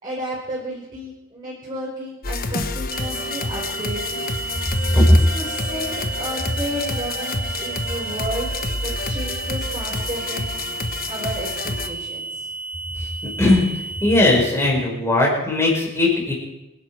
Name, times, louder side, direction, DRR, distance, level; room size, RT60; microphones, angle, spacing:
voice 1, 0.0-4.2 4.9-10.5 11.1-12.3, equal, 25° right, -7 dB, 5.0 m, -32 dB
sound 1, 2.2-11.9, left 3 dB, 45° left, 1.3 m, -29 dB
sound 2, 2.9-14.3, right 4 dB, 10° right, 2.2 m, -32 dB
voice 2, 13.0-13.6 14.0-16.3, left 2 dB, 15° left, -2 dB, 5.4 m, -18 dB
26.0 x 11.0 x 4.8 m, 0.94 s
head